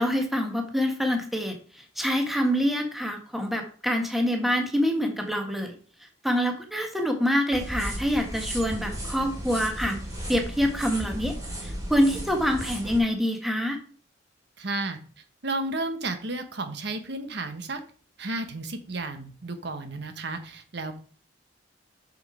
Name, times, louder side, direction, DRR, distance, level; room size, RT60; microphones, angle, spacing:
voice 1, 0.0-1.6 2.0-5.7 6.2-9.9 10.3-11.4 11.6-13.8, equal, ahead, 3 dB, 1.3 m, -26 dB
sound 1, 7.5-13.0, equal, 20° right, 3.1 m, -35 dB
voice 2, 14.6-15.0 15.4-17.8 18.2-21.0, right 2 dB, 65° right, 8 dB, 1.1 m, -32 dB
6.6 x 6.4 x 4.8 m, 0.42 s
head